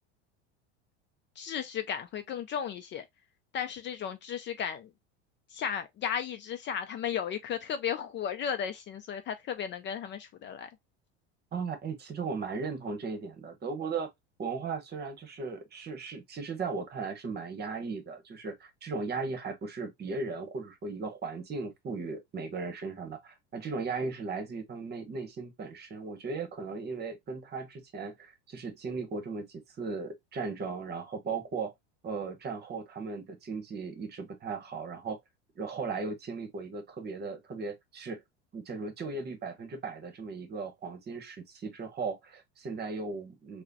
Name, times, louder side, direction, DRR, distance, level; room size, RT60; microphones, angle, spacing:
voice 1, 1.4-3.0 3.5-4.9 5.5-10.7, left 8 dB, 35° left, 0.4 m, -35 dB
voice 2, 11.5-14.1 14.4-31.7 32.0-35.2 35.6-38.2 38.5-43.6, right 4 dB, 30° right, 1.0 m, -37 dB
4.8 x 2.2 x 2.6 m
supercardioid pair, 115°, 33 cm